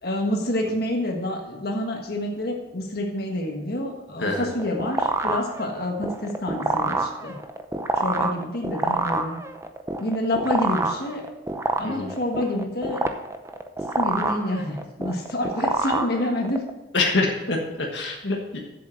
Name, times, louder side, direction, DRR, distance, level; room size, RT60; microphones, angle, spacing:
voice 1, 0.0-7.3 8.0-9.4 10.0-11.2 11.8-13.1 14.0-16.6, left 1 dB, 60° left, 1 dB, 1.5 m, -28 dB
voice 2, 4.2-4.5 11.8-12.1 16.9-18.6, left 3 dB, 75° left, 0 dB, 1.4 m, -25 dB
sound 1, 4.3-16.7, right 2 dB, 15° right, 0.6 m, -27 dB
7.7 x 7.3 x 6.5 m, 1.0 s
head